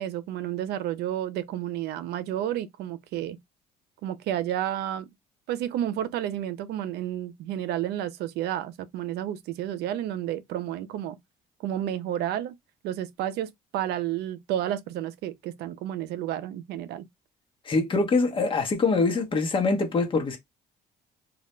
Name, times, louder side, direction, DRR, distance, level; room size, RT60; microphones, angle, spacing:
voice 1, 0.0-3.4 4.0-5.1 5.5-11.2 11.6-12.6 12.8-17.0, right 11 dB, 75° right, 0.4 m, -31 dB
voice 2, 17.6-20.4, left 3 dB, 30° left, 0.9 m, -24 dB
2.4 x 2.1 x 3.0 m
cardioid pair, 110°, 17 cm